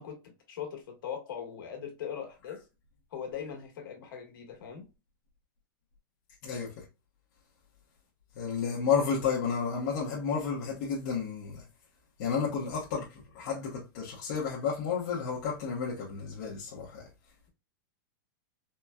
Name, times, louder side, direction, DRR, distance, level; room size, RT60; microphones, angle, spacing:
voice 1, 0.0-2.6 3.1-4.9, left 8 dB, 70° left, 1.5 m, -40 dB
voice 2, 8.4-11.6 12.2-13.1 13.3-17.1, left 6 dB, 50° left, 1.0 m, -31 dB
4.2 x 2.2 x 2.3 m
supercardioid pair, 160°, 12 cm